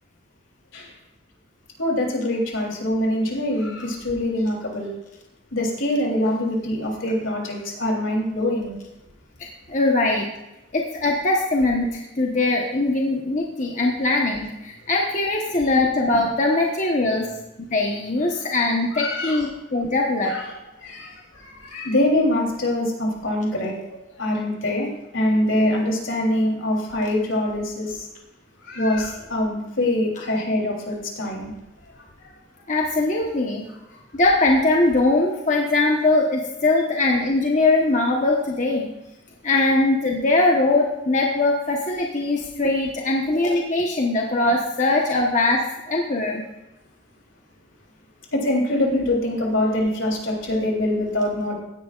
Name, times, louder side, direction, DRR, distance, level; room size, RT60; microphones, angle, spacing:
voice 1, 1.8-4.9 5.5-8.7 18.9-19.4 20.2-20.4 20.8-23.7 24.2-24.9 25.1-28.1 28.6-31.5 48.3-51.5, left 1 dB, 80° left, -1 dB, 3.4 m, -24 dB
voice 2, 9.7-10.3 10.7-17.3 17.6-20.4 32.7-33.7 34.1-38.9 39.4-46.5, left 2 dB, 40° left, -1 dB, 1.2 m, -21 dB
16.5 x 10.5 x 2.5 m, 0.97 s
head